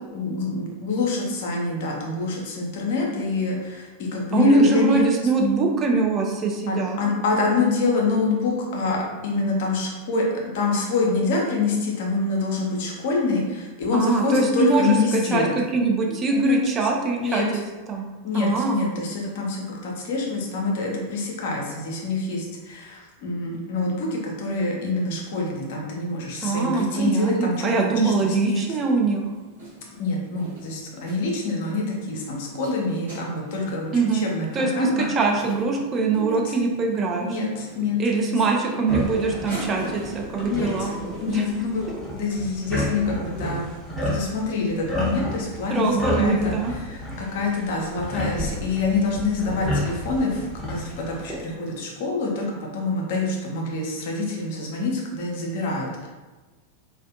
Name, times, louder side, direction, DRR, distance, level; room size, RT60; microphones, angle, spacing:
voice 1, 0.1-5.1 6.7-10.2 10.5-15.5 16.3-16.6 17.2-17.5 18.2-27.7 28.0-28.6 30.0-35.1 36.1-36.5 37.2-38.0 38.3-38.4 40.4-40.9 41.2-41.8 42.1-43.7 44.0-46.5 46.8-52.5 52.7-56.1, left 3 dB, 50° left, -1 dB, 0.5 m, -26 dB
voice 2, 4.3-7.0 13.9-17.4 17.9-18.0 18.3-18.8 26.4-29.2 33.9-34.3 34.5-37.4 38.0-40.9 41.3-41.5 41.9-42.0 45.7-46.7, right 3 dB, 25° right, 0 dB, 0.3 m, -22 dB
sound 1, 28.2-43.8, right 1 dB, 70° right, 1.1 m, -43 dB
sound 2, 38.9-51.3, left 1 dB, ahead, 0.8 m, -32 dB
2.4 x 2.1 x 2.5 m, 1.2 s
figure-of-eight pair, 90°, 0 cm